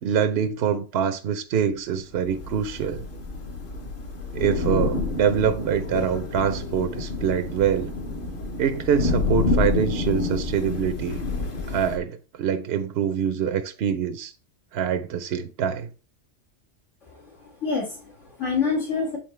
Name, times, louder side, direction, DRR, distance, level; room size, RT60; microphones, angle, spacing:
voice 1, 0.0-3.0 4.3-7.9 8.6-11.2 11.7-14.3 14.7-15.9, right 8 dB, 65° right, 0.8 m, -25 dB
Thunder / Rain, 2.2-12.0, left 3 dB, 50° left, 1.1 m, -28 dB
voice 2, 17.0-19.2, left 5 dB, 75° left, 2.4 m, -27 dB
8.7 x 3.9 x 3.2 m
omnidirectional pair, 1.3 m